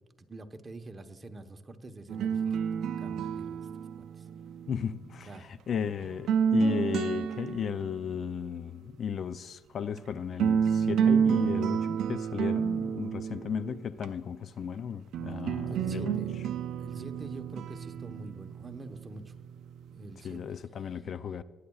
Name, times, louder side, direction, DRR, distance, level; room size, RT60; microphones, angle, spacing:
voice 1, 0.2-2.6 3.0-3.7 4.0-4.2 5.3-5.5 15.7-16.4 16.8-19.3 19.9-20.4, right 2 dB, 30° right, 1.0 m, -46 dB
sound 1, 2.1-5.4 6.0-8.2 10.0-10.1 10.4-14.1 15.1-20.1, right 7 dB, 80° right, 0.4 m, -30 dB
voice 2, 4.7-16.2 20.2-21.4, left 7 dB, 55° left, 0.4 m, -35 dB
19.0 x 9.6 x 2.4 m
cardioid pair, 90°, 0 cm